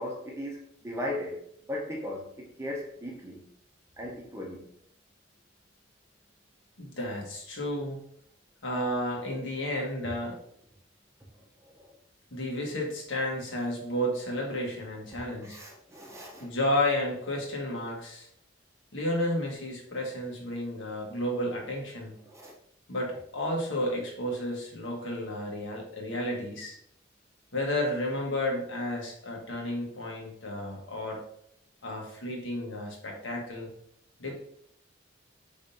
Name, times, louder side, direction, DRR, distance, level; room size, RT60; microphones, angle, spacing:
voice 1, 0.0-1.4 1.7-3.4 4.0-4.7 11.8-11.9 15.4-16.5 22.2-22.5, left 1 dB, 15° right, 0.7 m, -37 dB
voice 2, 6.8-8.0 8.6-10.3 12.3-15.6 16.4-18.3 18.9-22.1 22.9-26.8 27.5-31.2 31.8-33.7 34.2-34.4, left 1 dB, 80° left, 1.3 m, -32 dB
5.1 x 3.6 x 2.7 m
head